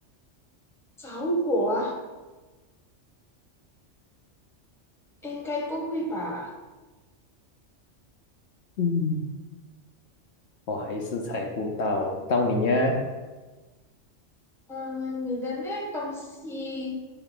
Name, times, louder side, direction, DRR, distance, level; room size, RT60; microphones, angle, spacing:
voice 1, 1.0-2.0 5.2-6.5 14.7-17.0, equal, ahead, 0 dB, 1.1 m, -30 dB
voice 2, 8.8-9.2 10.7-13.1, left 2 dB, 65° left, 2 dB, 1.0 m, -26 dB
9.9 x 3.4 x 5.3 m, 1.3 s
omnidirectional pair, 1.3 m